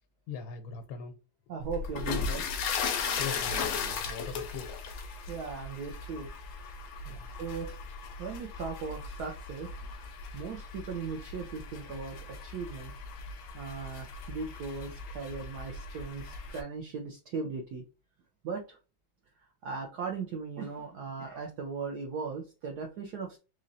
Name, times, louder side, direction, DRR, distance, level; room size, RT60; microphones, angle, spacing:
voice 1, 0.3-1.2 3.2-4.7 7.0-7.3, left 6 dB, 85° left, 4 dB, 1.4 m, -41 dB
voice 2, 1.5-2.5 5.3-6.3 7.3-7.7 8.2-12.9 13.5-17.8 18.4-18.8 19.6-23.4, right 5 dB, 70° right, 2 dB, 1.0 m, -38 dB
sound 1, 1.6-16.6, left 5 dB, 70° left, 0.8 m, -37 dB
3.8 x 3.1 x 2.6 m, 0.32 s
omnidirectional pair, 2.1 m